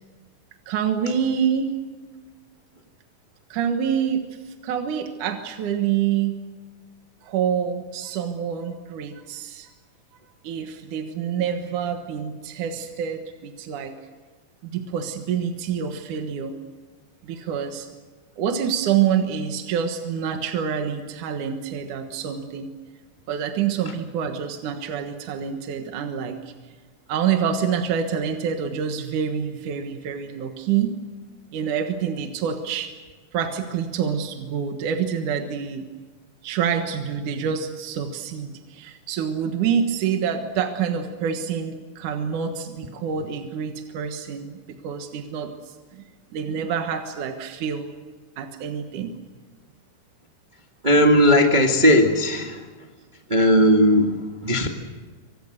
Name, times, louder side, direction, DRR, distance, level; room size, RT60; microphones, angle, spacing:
voice 1, 0.7-1.7 3.5-6.3 7.2-9.7 10.4-14.0 14.6-16.6 17.2-17.9 18.4-22.7 23.3-26.5 27.1-30.9 31.5-32.9 33.3-35.9 36.4-46.0 46.3-47.9 48.4-49.1, right 8 dB, 70° right, 5 dB, 2.9 m, -27 dB
voice 2, 50.8-52.6 53.3-54.7, equal, 20° right, 2 dB, 1.5 m, -17 dB
27.5 x 25.5 x 6.7 m, 1.4 s
omnidirectional pair, 3.9 m